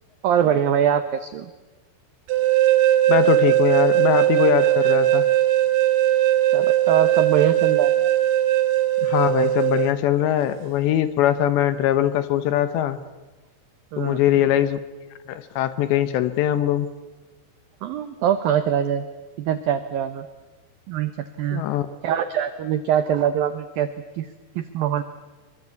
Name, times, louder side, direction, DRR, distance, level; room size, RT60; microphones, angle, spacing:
voice 1, 0.2-1.5 6.5-7.9 13.9-14.2 17.8-19.1 19.4-20.3 20.9-21.1 21.4-21.6 22.0-23.9 24.1-24.3 24.6-25.0, right 9 dB, 90° right, 11 dB, 2.0 m, -23 dB
sound 1, 2.3-9.9, right 14 dB, 70° right, 2.8 m, -19 dB
voice 2, 3.1-5.3 9.0-13.0 14.0-14.8 15.3-16.9 21.5-21.9, left 11 dB, 75° left, 13 dB, 3.0 m, -21 dB
25.0 x 23.5 x 8.4 m, 1.2 s
omnidirectional pair, 5.6 m